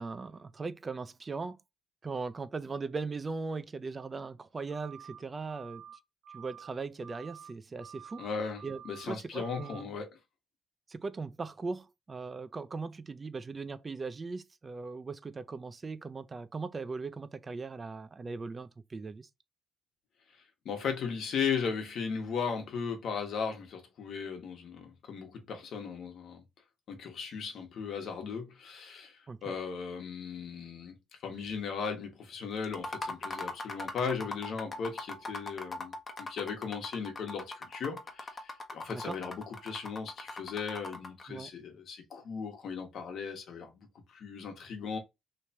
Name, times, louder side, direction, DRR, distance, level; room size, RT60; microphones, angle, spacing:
voice 1, 0.0-1.6 2.0-5.8 6.3-8.2 8.6-9.9 10.9-19.3 29.3-29.5 38.9-39.2 41.3-41.5, right 4 dB, 30° right, 0.4 m, -39 dB
sound 1, 4.7-5.2 5.5-5.9 6.2-6.7 7.0-7.5 7.8-8.3 8.5-9.0 9.3-9.8, right 9 dB, 80° right, 1.3 m, -49 dB
voice 2, 8.2-10.2 20.6-26.4 26.9-31.0 31.2-45.0, left 6 dB, 65° left, 1.1 m, -37 dB
sound 2, 32.6-41.2, left 2 dB, 35° left, 0.9 m, -40 dB
3.1 x 2.8 x 3.3 m
cardioid pair, 90°, 0 cm